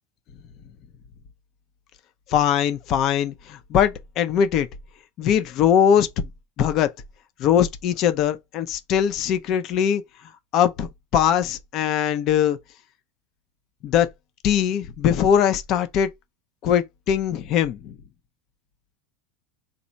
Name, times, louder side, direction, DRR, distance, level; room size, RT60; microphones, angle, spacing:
voice 1, 2.3-4.7 5.2-6.3 6.6-6.9 7.4-10.0 10.5-12.6 13.8-14.1 14.4-16.1 16.6-17.9, left 9 dB, 45° left, 0.6 m, -21 dB
3.9 x 2.0 x 4.4 m
supercardioid pair, 130°, 0 cm